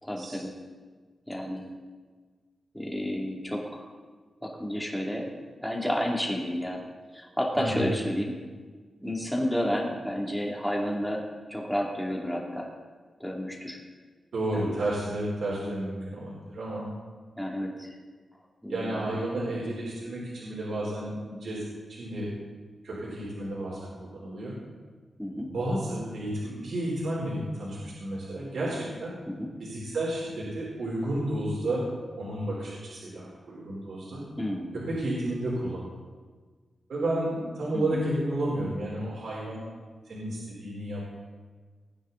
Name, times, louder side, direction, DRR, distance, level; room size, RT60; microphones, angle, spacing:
voice 1, 0.0-0.5 1.3-1.7 2.7-3.9 4.4-5.3 5.6-6.8 7.1-8.4 9.0-12.7 13.2-13.8 14.5-14.6 17.4-17.9 18.6-19.2 25.2-25.5 29.3-29.5 34.4-34.7 37.7-38.0, equal, ahead, -2 dB, 2.8 m, -31 dB
voice 2, 7.6-7.9 14.3-16.9 18.7-21.6 21.9-22.3 22.8-24.6 25.5-29.1 29.6-31.8 32.2-34.3 34.7-35.9 36.9-39.6 40.1-41.1, right 1 dB, 75° right, -6 dB, 3.8 m, -32 dB
19.5 x 9.4 x 4.0 m, 1.5 s
wide cardioid pair, 85°, 0 cm